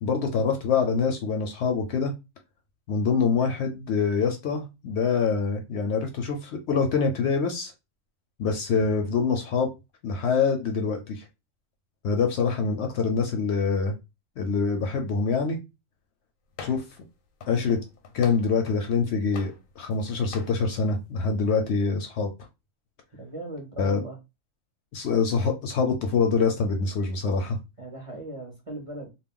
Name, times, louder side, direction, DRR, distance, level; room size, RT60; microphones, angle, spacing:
voice 1, 0.0-2.1 2.9-7.7 8.4-9.7 10.0-11.2 12.0-13.9 14.4-15.6 16.6-16.8 17.5-17.8 18.1-22.3 23.8-24.0 24.9-27.6, left 5 dB, 65° left, 5 dB, 0.7 m, -25 dB
sound 1, 16.6-17.0 17.4-18.9 19.3-20.0 20.3-20.6, left 5 dB, 85° left, 1.0 m, -43 dB
voice 2, 23.2-24.2 27.8-29.1, right 2 dB, 35° right, 0 dB, 0.5 m, -38 dB
2.3 x 2.1 x 3.6 m, 0.25 s
omnidirectional pair, 1.4 m